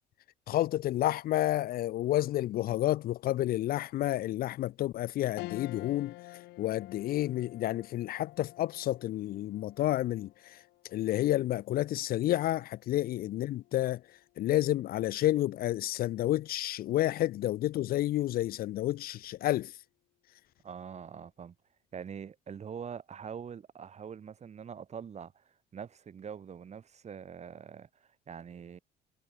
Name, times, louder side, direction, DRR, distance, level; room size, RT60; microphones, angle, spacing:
voice 1, 0.5-6.1 6.6-10.3 10.9-14.0 14.4-19.7, left 14 dB, 65° left, 0.6 m, -30 dB
sound 1, 5.4-15.0 15.4-15.5 16.9-17.3, left 20 dB, 90° left, 8.0 m, -50 dB
voice 2, 20.6-21.5 21.9-28.8, right 7 dB, 40° right, 8.0 m, -44 dB
cardioid pair, 110°, 17 cm